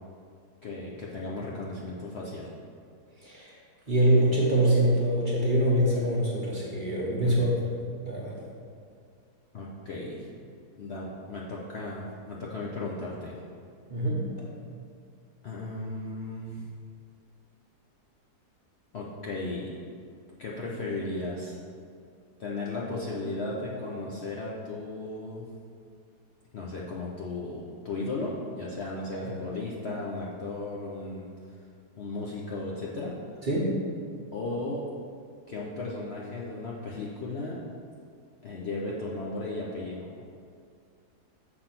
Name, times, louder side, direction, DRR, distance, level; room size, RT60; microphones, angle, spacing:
voice 1, 0.6-2.5 7.2-7.4 9.5-10.4 10.8-13.4 15.4-16.7 18.9-19.8 20.4-21.6 22.4-25.4 26.5-31.3 32.0-33.1 34.3-34.8 35.5-37.6 38.4-40.2, left 2 dB, 55° left, -4 dB, 0.8 m, -35 dB
voice 2, 3.2-3.5 3.9-7.4 8.0-8.3 13.9-14.3 29.1-29.3 33.4-33.9, right 1 dB, 35° right, -5 dB, 1.0 m, -24 dB
6.6 x 3.9 x 5.8 m, 2.2 s
omnidirectional pair, 1.7 m